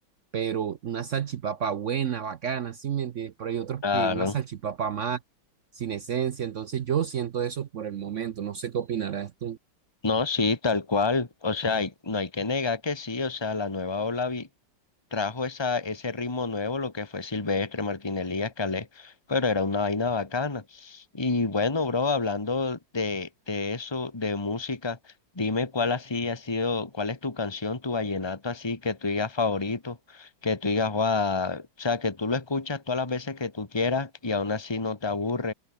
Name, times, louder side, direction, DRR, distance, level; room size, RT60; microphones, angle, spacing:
voice 1, 0.3-5.2 5.7-9.6, right 8 dB, 70° right, 0.7 m, -30 dB
voice 2, 3.8-4.4 10.0-14.5 15.1-35.5, left 4 dB, 15° left, 2.0 m, -28 dB
omnidirectional pair, 2.2 m